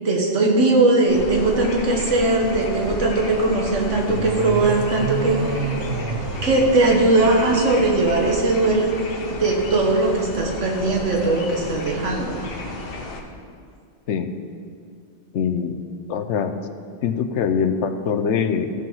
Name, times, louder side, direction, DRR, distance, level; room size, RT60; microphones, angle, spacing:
voice 1, 0.0-5.8 6.4-8.9 9.3-12.4, right 2 dB, 85° right, 0 dB, 1.6 m, -19 dB
sound 1, 1.1-13.2, left 2 dB, 55° left, 1.1 m, -33 dB
sound 2, 4.1-7.4, right 5 dB, 55° right, 0.8 m, -29 dB
voice 2, 15.3-15.8 16.1-16.5 17.0-18.8, left 7 dB, 80° left, 9 dB, 0.9 m, -23 dB
14.0 x 5.2 x 5.6 m, 2.2 s
omnidirectional pair, 1.2 m